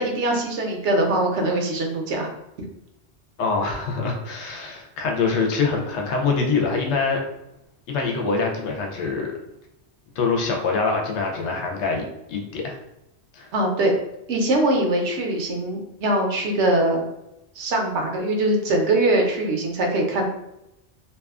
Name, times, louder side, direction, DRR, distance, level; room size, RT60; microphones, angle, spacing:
voice 1, 0.0-2.3 13.5-13.9 14.3-17.1 17.6-20.3, right 1 dB, 85° right, 1 dB, 0.9 m, -22 dB
voice 2, 3.4-7.2 7.9-9.3 10.2-12.8 13.3-13.5, left 4 dB, 80° left, 1 dB, 0.9 m, -24 dB
2.6 x 2.3 x 2.3 m, 0.87 s
omnidirectional pair, 1.1 m